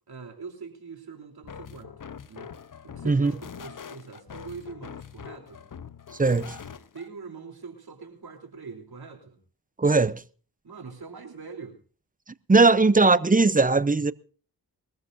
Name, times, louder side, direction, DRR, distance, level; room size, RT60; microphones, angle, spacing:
voice 1, 0.1-2.0 2.3-2.5 2.8-5.7 6.9-9.4 10.6-11.8, right 5 dB, 65° right, 3.7 m, -43 dB
sound 1, 1.4-7.1, left 7 dB, 50° left, 1.0 m, -43 dB
voice 2, 6.2-6.6 9.8-10.2 12.5-14.1, right 3 dB, 20° right, 0.7 m, -19 dB
22.5 x 14.5 x 2.7 m
cardioid pair, 45°, 41 cm